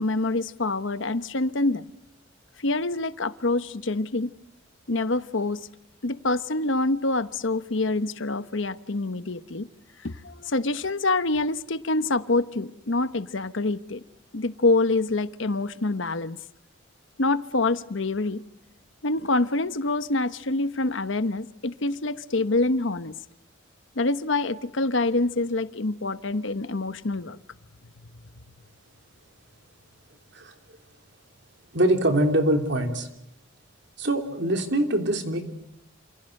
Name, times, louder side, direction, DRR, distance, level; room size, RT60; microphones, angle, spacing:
voice 1, 0.0-1.8 2.6-4.3 4.9-5.6 6.0-9.7 10.0-14.0 14.3-16.4 17.2-18.4 19.0-23.1 24.0-27.4, left 2 dB, 65° left, 13 dB, 1.1 m, -26 dB
voice 2, 31.7-33.1 34.0-35.4, right 1 dB, 60° right, 5 dB, 3.2 m, -23 dB
28.0 x 28.0 x 6.6 m, 0.83 s
head